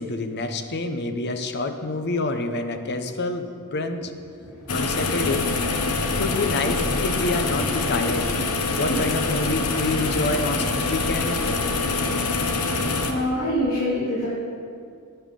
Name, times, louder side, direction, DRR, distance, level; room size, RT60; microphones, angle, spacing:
voice 1, 0.0-4.1 4.7-5.5 6.2-11.9, left 2 dB, 50° left, 7 dB, 0.8 m, -28 dB
voice 2, 4.4-4.7 7.6-8.1 8.9-9.0 13.1-14.3, left 1 dB, 70° left, -9 dB, 2.9 m, -26 dB
sound 1, 4.7-13.1, left 3 dB, 90° left, 1.0 m, -25 dB
11.5 x 9.5 x 5.3 m, 2.3 s
head